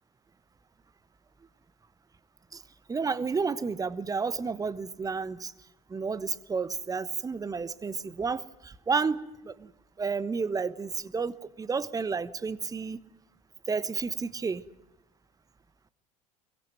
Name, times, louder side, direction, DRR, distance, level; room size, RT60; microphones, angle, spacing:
voice 1, 2.9-5.5 5.9-9.7 10.0-13.0 13.7-14.6, right 5 dB, 20° right, 16 dB, 1.2 m, -31 dB
22.5 x 22.5 x 9.2 m, 0.90 s
figure-of-eight pair, 65°, 18 cm